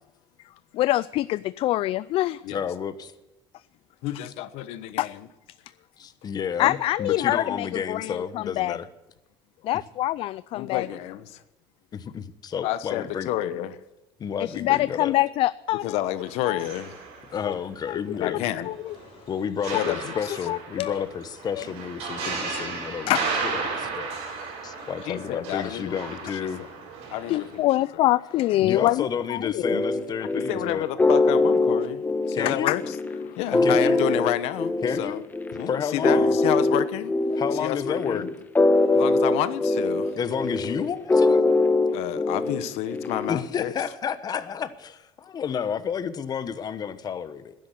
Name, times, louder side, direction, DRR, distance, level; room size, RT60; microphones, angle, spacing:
voice 1, 0.7-2.4 5.0-5.1 6.6-8.8 9.6-10.9 14.6-15.9 16.5-16.6 17.9-18.3 18.7-18.8 20.5-21.0 23.1-23.2 27.3-29.0 29.3-29.8 32.7-32.8, left 15 dB, 60° left, 0.4 m, -25 dB
voice 2, 2.5-3.1 6.0-8.9 11.9-13.3 14.2-15.1 17.3-18.5 19.3-24.1 24.6-26.6 28.6-30.9 32.3-32.8 33.6-34.0 34.8-35.3 35.7-36.4 37.4-38.3 40.2-41.4 43.3-47.5, left 7 dB, 40° left, 1.1 m, -31 dB
voice 3, 4.0-5.3 10.5-11.4 12.6-13.8 15.8-16.9 18.1-18.7 19.7-20.1 25.0-26.0 26.6-26.7 27.1-27.6 30.2-33.0 33.4-35.2 35.6-37.1 37.6-38.3 38.9-40.1 40.4-40.7 41.9-43.7, left 13 dB, 75° left, 1.0 m, -30 dB
sound 1, 16.2-17.9 18.2-27.6, right 4 dB, 75° right, 5.7 m, -35 dB
sound 2, 29.6-43.4, left 2 dB, 15° left, 1.2 m, -23 dB
12.5 x 10.5 x 8.2 m
cardioid pair, 110°, 11 cm